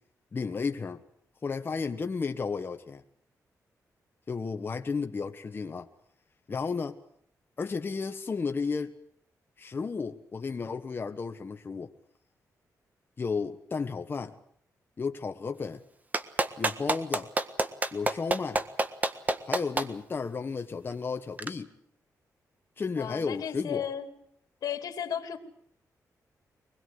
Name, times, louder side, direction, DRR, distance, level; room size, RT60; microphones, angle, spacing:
voice 1, 0.3-1.0 1.4-3.0 4.3-5.9 6.5-7.0 7.6-9.0 9.6-11.9 13.2-14.4 15.0-15.8 16.6-17.3 17.9-18.6 19.5-21.7 22.8-23.9, left 5 dB, 35° left, 1.3 m, -33 dB
Clapping, 16.1-19.9 21.4-21.5, right 2 dB, 25° right, 1.6 m, -27 dB
voice 2, 23.0-24.1 24.6-25.4, left 9 dB, 80° left, 2.7 m, -34 dB
24.5 x 20.5 x 8.0 m
wide cardioid pair, 115°, 6 cm